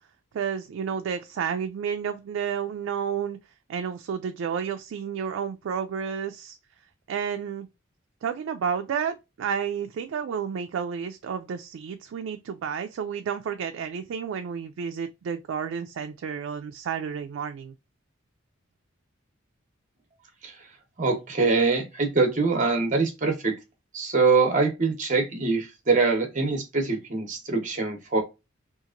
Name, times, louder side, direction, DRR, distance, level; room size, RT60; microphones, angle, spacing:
voice 1, 0.3-3.4 3.7-6.6 7.1-7.7 8.2-17.7, right 7 dB, 75° right, 0.3 m, -31 dB
voice 2, 21.0-23.6 23.9-28.2, right 4 dB, 40° right, 0.8 m, -24 dB
2.9 x 2.4 x 2.4 m
head